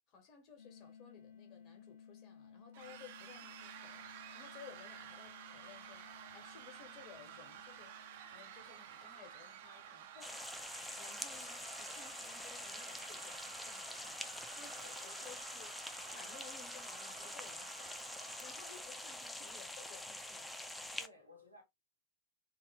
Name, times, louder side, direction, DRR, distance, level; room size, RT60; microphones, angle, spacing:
voice 1, 0.0-8.0 8.3-14.3 14.6-15.7 16.1-18.0 18.4-20.6, left 7 dB, 40° left, 1.3 m, -58 dB
sound 1, 0.6-11.3, left 7 dB, 65° left, 1.0 m, -60 dB
sound 2, 2.7-19.0, right 10 dB, 55° right, 0.5 m, -53 dB
sound 3, 10.2-21.1, left 1 dB, 5° left, 0.4 m, -46 dB
voice 2, 14.8-15.4 21.0-21.6, left 3 dB, 90° right, 1.6 m, -58 dB
3.5 x 2.2 x 3.4 m
figure-of-eight pair, 90°, 0 cm